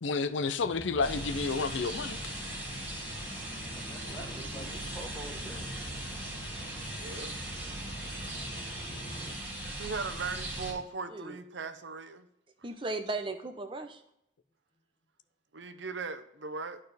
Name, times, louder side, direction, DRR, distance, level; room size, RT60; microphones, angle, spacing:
voice 1, 0.0-2.3, left 4 dB, 75° left, 12 dB, 0.5 m, -30 dB
sound 1, 0.6-9.3, left 1 dB, 30° left, 0.9 m, -46 dB
sound 2, 1.0-10.7, right 1 dB, 10° right, 1.6 m, -39 dB
voice 2, 3.5-5.8, equal, 10° left, 0 dB, 1.3 m, -46 dB
voice 3, 7.0-7.4 9.8-12.3 15.5-16.8, right 4 dB, 65° right, 8 dB, 0.7 m, -38 dB
voice 4, 11.1-11.6 12.6-14.0, right 2 dB, 25° right, 6 dB, 0.6 m, -37 dB
11.5 x 4.4 x 3.3 m, 0.76 s
head